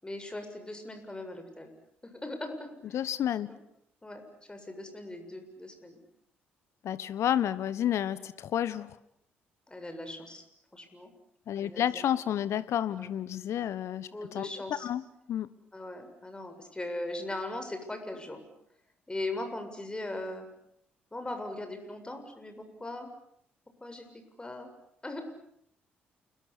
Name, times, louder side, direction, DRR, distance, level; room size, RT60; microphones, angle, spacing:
voice 1, 0.0-1.7 2.0-3.1 3.5-3.6 4.0-6.0 9.7-10.4 10.7-11.1 11.6-12.1 13.0-13.1 14.1-14.9 15.7-18.5 19.1-20.5 21.1-23.1 23.8-24.7 25.0-25.2, left 2 dB, 15° left, 6 dB, 7.3 m, -39 dB
voice 2, 2.9-3.5 6.8-8.9 11.5-14.5 14.8-15.0 15.3-15.5, left 10 dB, 55° left, 17 dB, 1.2 m, -30 dB
29.5 x 21.5 x 8.5 m, 0.73 s
figure-of-eight pair, 45°, 6 cm